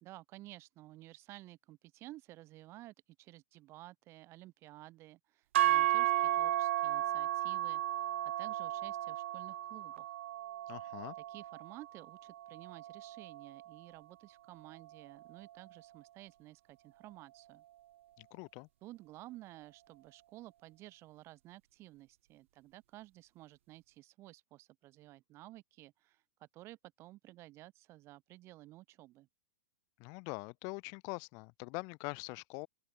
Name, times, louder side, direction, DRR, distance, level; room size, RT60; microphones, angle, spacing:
voice 1, 0.0-10.2 11.3-17.6 18.8-29.3, right 17 dB, 40° right, 1.6 m, -54 dB
sound 1, 5.5-13.8, right 13 dB, 65° right, 0.7 m, -34 dB
voice 2, 10.7-11.1 18.2-18.7 30.0-32.7, left 33 dB, 45° left, 2.6 m, -43 dB
open air
hypercardioid pair, 110°, 7 cm